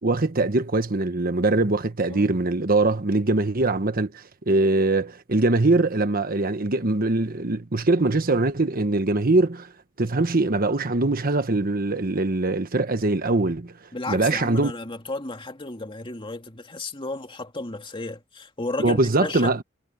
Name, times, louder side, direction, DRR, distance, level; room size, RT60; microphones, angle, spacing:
voice 1, 0.0-9.7 10.0-13.7 14.1-14.7 18.8-19.6, right 2 dB, 50° right, 1.2 m, -22 dB
voice 2, 13.9-19.6, left 2 dB, 25° left, 2.4 m, -33 dB
head